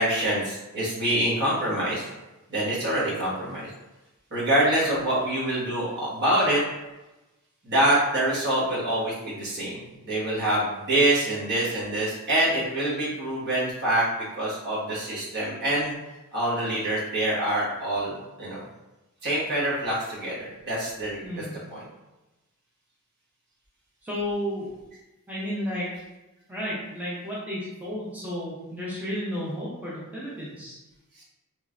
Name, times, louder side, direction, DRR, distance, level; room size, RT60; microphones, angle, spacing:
voice 1, 0.0-2.1 2.5-3.7 4.3-6.6 7.6-9.8 10.0-15.9 16.3-18.6 19.2-21.4 21.7-21.8 31.2-31.3, right 1 dB, 50° right, -7 dB, 1.2 m, -25 dB
voice 2, 21.2-21.6 24.0-24.7 25.3-25.9 26.5-30.8, equal, 5° right, -8 dB, 0.6 m, -32 dB
3.1 x 3.0 x 2.5 m, 1.0 s
head